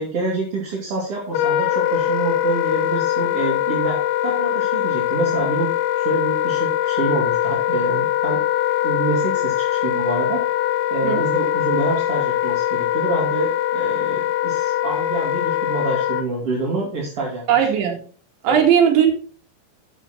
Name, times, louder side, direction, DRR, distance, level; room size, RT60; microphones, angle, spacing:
voice 1, 0.0-4.0 4.2-8.4 8.8-10.4 10.9-17.4 18.4-18.6, right 2 dB, 35° right, -4 dB, 2.9 m, -26 dB
Wind instrument woodwind instrument, 1.3-16.2, left 13 dB, 80° left, 2.8 m, -22 dB
voice 2, 17.5-18.0 18.4-19.1, right 8 dB, 75° right, 2 dB, 4.2 m, -17 dB
13.0 x 9.1 x 3.0 m, 0.42 s
omnidirectional pair, 5.4 m